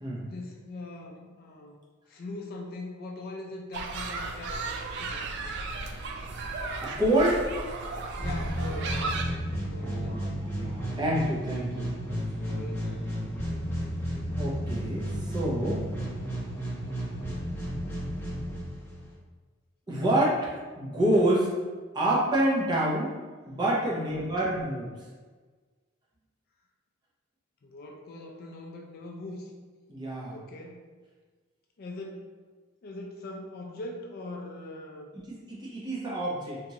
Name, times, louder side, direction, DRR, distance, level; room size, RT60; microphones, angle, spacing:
voice 1, 0.3-1.8 2.1-5.5 8.2-9.4 9.7-10.4 12.4-13.2 13.6-13.8 23.9-24.3 27.6-29.5 30.3-30.9 31.8-32.3 32.8-35.2, left 2 dB, 50° left, 0 dB, 0.4 m, -42 dB
sound 1, 3.7-9.2, right 3 dB, 60° right, 0.3 m, -35 dB
voice 2, 6.8-7.5 9.8-11.9 14.1-15.8 19.9-21.5 21.9-23.1 23.5-24.9 29.9-30.4 35.1-36.6, right 1 dB, 20° right, -5 dB, 0.7 m, -27 dB
sound 2, 8.2-19.1, equal, 10° left, 1.0 m, -33 dB
3.0 x 2.4 x 2.7 m, 1.4 s
head